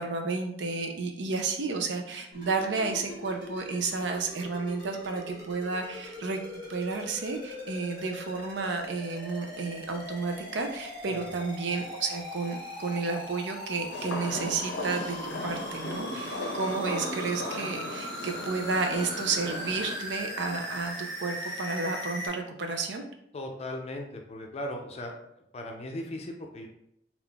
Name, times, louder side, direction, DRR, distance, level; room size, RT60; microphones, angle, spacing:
voice 1, 0.0-6.4 6.7-23.0, right 4 dB, 85° right, 4 dB, 0.5 m, -32 dB
sound 1, 2.3-22.3, equal, 25° right, 1.3 m, -40 dB
sound 2, 13.9-20.0, left 2 dB, 85° left, 0.5 m, -36 dB
voice 2, 23.3-25.2 25.5-26.7, left 1 dB, 35° left, 3 dB, 0.4 m, -37 dB
3.7 x 2.4 x 3.4 m, 0.72 s
head